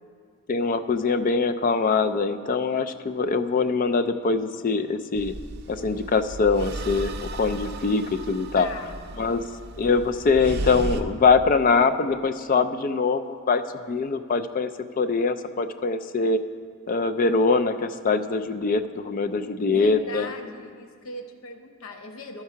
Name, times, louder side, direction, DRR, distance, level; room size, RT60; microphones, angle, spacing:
voice 1, 0.5-5.3 5.7-8.7 9.2-9.4 9.8-13.6 13.9-14.7 15.0-16.4 16.9-20.3, left 4 dB, 40° left, 11 dB, 0.4 m, -23 dB
sound 1, 5.1-11.0, right 2 dB, 50° right, 0.5 m, -35 dB
voice 2, 8.5-9.0 19.4-22.4, left 2 dB, 70° left, 5 dB, 0.8 m, -39 dB
13.5 x 4.6 x 5.6 m, 2.2 s
head